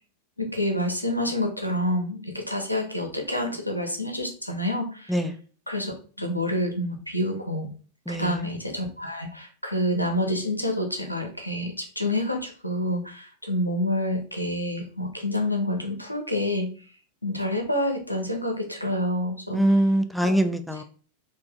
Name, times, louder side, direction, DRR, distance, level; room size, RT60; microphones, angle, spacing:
voice 1, 0.4-5.2 5.7-7.7 8.1-16.7 17.2-19.7 20.2-20.3, left 1 dB, 90° left, 2 dB, 0.9 m, -28 dB
voice 2, 8.1-8.4 19.5-20.8, right 1 dB, ahead, 7 dB, 0.4 m, -23 dB
4.2 x 2.8 x 3.5 m, 0.40 s
figure-of-eight pair, 90°, 0 cm